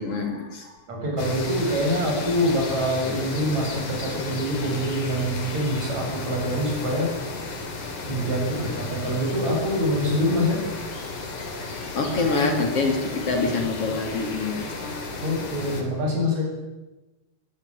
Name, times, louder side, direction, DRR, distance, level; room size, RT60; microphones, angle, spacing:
voice 1, 0.0-0.8 11.9-14.7, left 3 dB, 50° left, 4 dB, 3.8 m, -26 dB
voice 2, 0.9-7.1 8.1-10.6 15.2-16.4, equal, 65° right, 0 dB, 8.4 m, -25 dB
sound 1, 1.2-15.8, left 3 dB, 90° left, 5.0 m, -33 dB
22.5 x 17.5 x 9.2 m, 1.1 s
omnidirectional pair, 3.4 m